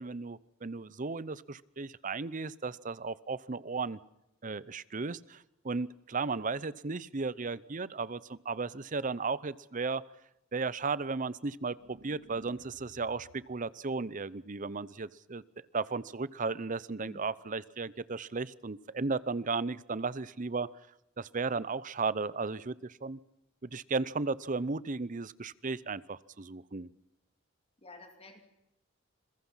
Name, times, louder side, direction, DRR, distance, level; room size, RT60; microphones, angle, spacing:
voice 1, 0.0-4.0 4.4-10.0 10.5-15.4 15.7-20.7 21.2-23.2 23.6-26.9, right 4 dB, 40° right, 19 dB, 0.7 m, -35 dB
sound 1, 11.7-13.6, right 1 dB, 70° right, 1.6 m, -56 dB
voice 2, 27.8-28.4, left 2 dB, 30° left, 5 dB, 2.8 m, -51 dB
27.0 x 22.0 x 5.7 m, 0.89 s
head